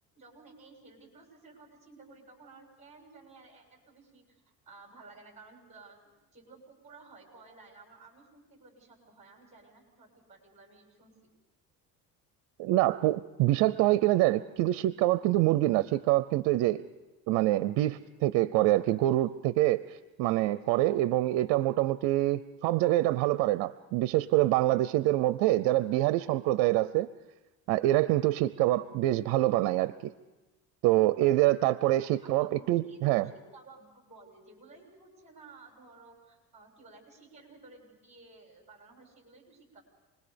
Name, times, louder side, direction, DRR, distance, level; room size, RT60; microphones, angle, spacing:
voice 1, 0.1-11.1 32.2-39.8, right 3 dB, 20° right, 2 dB, 6.7 m, -54 dB
voice 2, 12.6-16.8 17.3-27.1 27.7-30.1 30.8-33.3, right 16 dB, 75° right, 16 dB, 0.6 m, -25 dB
27.5 x 21.0 x 5.2 m, 1.1 s
cardioid pair, 110°, 32 cm